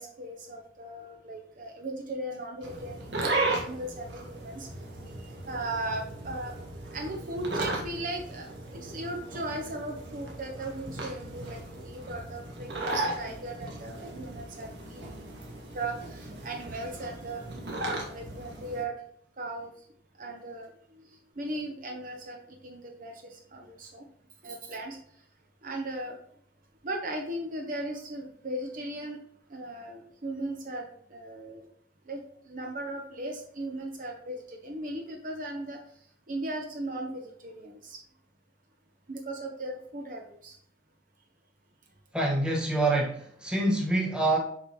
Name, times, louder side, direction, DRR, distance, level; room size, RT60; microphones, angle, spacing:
voice 1, 0.0-4.7 5.5-6.5 6.9-8.5 8.7-15.0 15.7-18.9 19.4-19.7 20.2-21.0 21.4-24.0 24.4-25.0 25.6-26.2 26.8-29.2 29.5-31.6 32.1-32.2 32.5-35.8 36.3-38.0 39.1-40.5, right 1 dB, 50° right, 2 dB, 1.0 m, -37 dB
sound 1, 2.6-18.8, right 2 dB, 70° right, 1.8 m, -36 dB
voice 2, 42.1-44.4, right 2 dB, 5° right, -2 dB, 1.6 m, -26 dB
7.8 x 5.4 x 3.2 m, 0.65 s
head